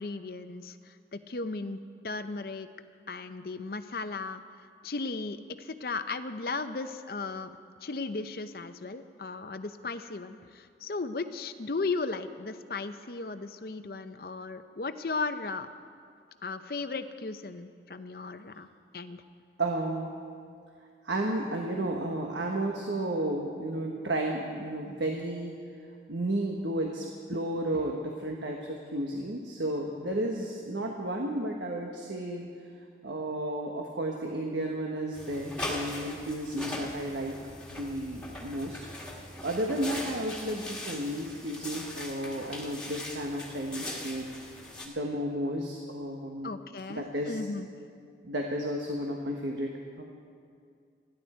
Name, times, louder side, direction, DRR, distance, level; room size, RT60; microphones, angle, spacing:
voice 1, 0.0-1.8 2.0-2.7 3.1-4.4 4.8-7.5 7.8-15.7 16.4-18.7 18.9-19.2 46.4-47.7, left 3 dB, 55° left, 10 dB, 0.6 m, -36 dB
voice 2, 19.6-20.1 21.0-25.5 26.1-32.4 33.0-37.4 37.7-38.8 39.4-46.5 46.9-47.4 48.2-49.7 50.0-50.1, right 1 dB, 90° right, 1 dB, 1.4 m, -33 dB
sound 1, 35.1-44.9, left 1 dB, 5° left, 1.7 m, -40 dB
28.5 x 11.0 x 4.4 m, 2.3 s
head